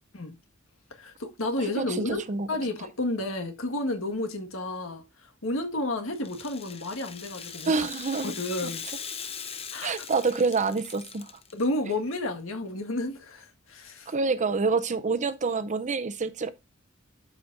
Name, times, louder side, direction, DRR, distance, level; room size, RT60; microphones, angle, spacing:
voice 1, 0.9-2.2 2.5-7.7 8.2-8.8 9.7-9.9 11.5-14.1, left 2 dB, 80° left, 1.6 m, -31 dB
voice 2, 1.6-2.5 7.7-8.3 8.6-8.7 9.8-11.4 14.1-16.5, right 4 dB, 35° right, 0.6 m, -27 dB
Rattle (instrument), 6.2-11.6, left 7 dB, 30° left, 0.7 m, -40 dB
12.5 x 5.0 x 2.6 m
head